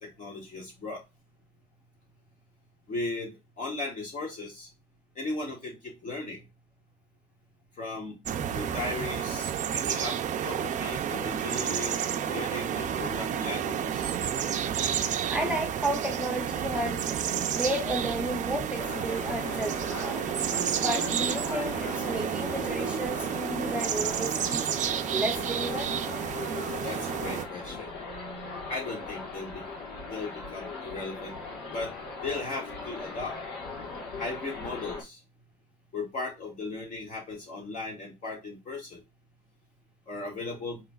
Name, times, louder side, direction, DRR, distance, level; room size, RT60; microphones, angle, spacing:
voice 1, 0.0-1.0 2.9-3.3 3.6-4.7 5.2-6.4 7.8-8.2 8.5-10.2 10.4-14.2 26.8-27.9 28.7-29.6 30.1-31.3 31.7-31.9 32.2-33.4 34.2-35.2 35.9-39.0 40.1-40.8, left 3 dB, 50° left, 2.0 m, -37 dB
sound 1, 8.3-27.5, right 9 dB, 45° right, 0.5 m, -30 dB
voice 2, 15.3-17.2 17.5-20.2 20.8-24.6 25.1-25.9, right 1 dB, 5° right, 0.7 m, -32 dB
sound 2, 18.8-35.0, left 3 dB, 80° left, 1.4 m, -39 dB
4.9 x 3.1 x 2.4 m
cardioid pair, 110°, 17 cm